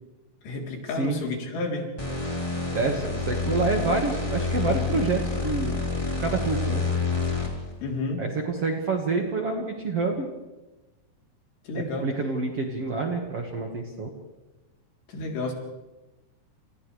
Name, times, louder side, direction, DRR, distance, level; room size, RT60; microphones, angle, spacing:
voice 1, 0.4-1.9 7.8-8.3 11.7-12.1 15.1-15.5, left 3 dB, 85° left, 0 dB, 5.7 m, -31 dB
sound 1, 2.0-7.7, left 4 dB, 10° left, 3.4 m, -28 dB
voice 2, 2.7-5.8 6.2-6.8 8.2-10.3 11.7-14.1, right 3 dB, 50° right, 1 dB, 2.1 m, -27 dB
29.0 x 28.5 x 3.4 m, 1.1 s
omnidirectional pair, 4.7 m